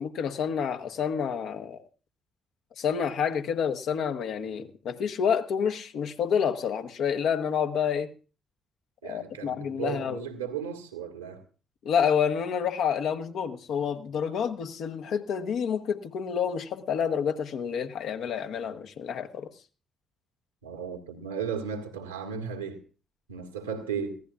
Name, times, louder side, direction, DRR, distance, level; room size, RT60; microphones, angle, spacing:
voice 1, 0.0-1.8 2.8-8.1 9.0-10.3 11.8-19.5, left 7 dB, 60° left, 1.2 m, -28 dB
voice 2, 9.0-11.4 20.6-22.8 23.3-24.2, right 7 dB, 80° right, 1.7 m, -35 dB
21.5 x 16.0 x 2.4 m
figure-of-eight pair, 40°, 0 cm